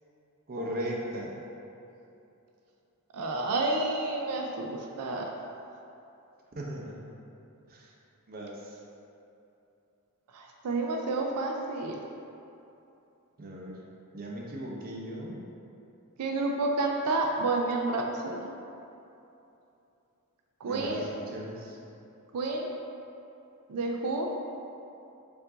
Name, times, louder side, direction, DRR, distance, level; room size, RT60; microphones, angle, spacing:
voice 1, 0.5-1.4 6.6-7.0 7.7-7.9 8.3-8.8 13.4-13.8 14.1-15.4 20.6-21.8, equal, 40° right, -3 dB, 0.6 m, -37 dB
voice 2, 3.1-5.3 10.3-12.0 16.2-18.4 20.6-21.1 22.3-22.7 23.7-24.3, right 2 dB, 90° right, 1 dB, 0.4 m, -30 dB
4.6 x 2.6 x 3.7 m, 2.8 s
head